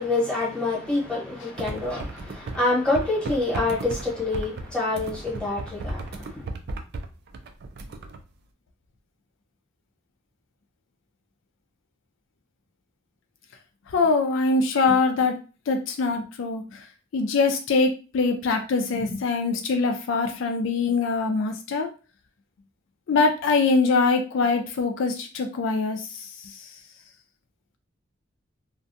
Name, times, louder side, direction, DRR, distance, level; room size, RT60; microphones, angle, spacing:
voice 1, 0.0-6.5, left 2 dB, 5° left, 1.0 m, -26 dB
sound 1, 1.6-2.6 2.9-8.2, right 2 dB, 55° right, 0.3 m, -35 dB
voice 2, 13.9-15.4 15.7-16.9 17.1-21.9 23.1-26.7, left 4 dB, 70° left, 0.4 m, -23 dB
2.5 x 2.2 x 2.6 m
head